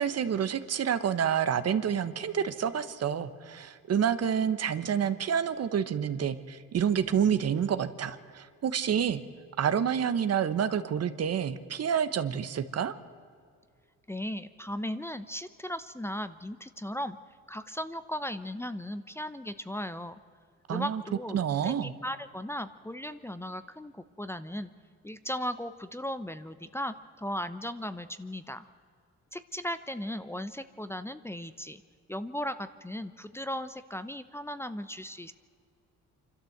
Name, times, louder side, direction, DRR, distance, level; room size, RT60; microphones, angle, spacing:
voice 1, 0.0-9.2 9.6-12.9 20.7-21.0 21.3-21.9, right 8 dB, 55° right, 12 dB, 1.2 m, -28 dB
voice 2, 14.1-17.2 17.5-20.2 20.7-24.7 25.0-28.7 29.3-31.8 32.1-35.3, equal, 10° left, 12 dB, 0.8 m, -37 dB
26.5 x 12.5 x 8.0 m, 2.2 s
cardioid pair, 90°, 30 cm